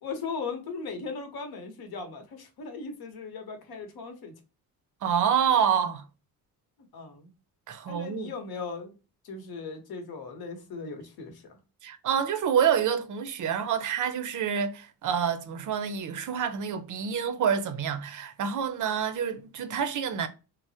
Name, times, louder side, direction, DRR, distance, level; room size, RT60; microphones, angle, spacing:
voice 1, 0.0-4.3 6.9-7.3 7.9-9.0 9.2-11.6, left 4 dB, 70° left, 0.9 m, -38 dB
voice 2, 5.0-6.0 7.7-8.3 11.8-20.3, right 8 dB, 55° right, 0.5 m, -27 dB
3.2 x 2.0 x 2.7 m
cardioid pair, 130°, 38 cm